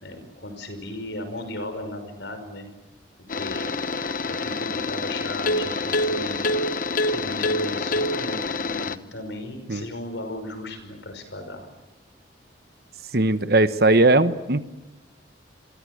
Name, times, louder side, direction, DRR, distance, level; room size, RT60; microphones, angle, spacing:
voice 1, 0.0-2.7 3.3-3.7 4.3-6.4 7.1-11.7, left 1 dB, 75° left, 8 dB, 5.7 m, -36 dB
sound 1, 3.3-9.0, left 2 dB, 45° left, 1.0 m, -26 dB
voice 2, 13.1-14.6, right 2 dB, 55° right, 11 dB, 1.2 m, -19 dB
28.0 x 22.5 x 8.0 m, 1.0 s
head